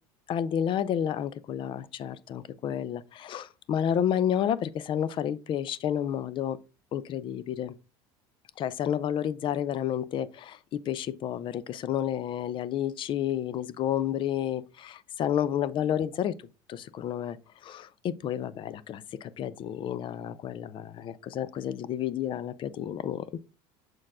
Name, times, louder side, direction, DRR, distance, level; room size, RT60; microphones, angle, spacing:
voice 1, 0.3-6.6 6.9-7.7 8.6-16.4 16.7-17.4 17.6-23.5, left 10 dB, 45° left, 0.5 m, -30 dB
6.3 x 4.4 x 3.6 m
supercardioid pair, 110°, 12 cm